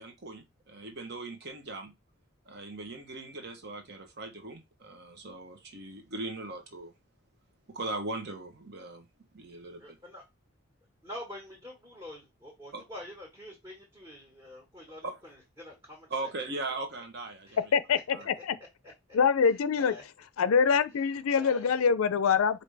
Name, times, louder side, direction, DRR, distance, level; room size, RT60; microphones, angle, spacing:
voice 1, 0.0-1.9 2.4-6.9 7.7-9.1 9.3-10.0 12.7-12.8 15.0-15.2 16.1-17.7 18.1-18.3, right 2 dB, 50° right, 0.9 m, -39 dB
voice 2, 9.8-10.2 11.0-16.3 17.5-17.6 17.9-18.0 18.3-18.4 18.8-18.9 19.4-20.0 20.9-21.9, left 1 dB, 20° right, 1.4 m, -47 dB
voice 3, 17.7-18.6 19.1-19.9 20.4-22.6, left 6 dB, 80° left, 0.4 m, -25 dB
5.0 x 2.7 x 3.3 m
head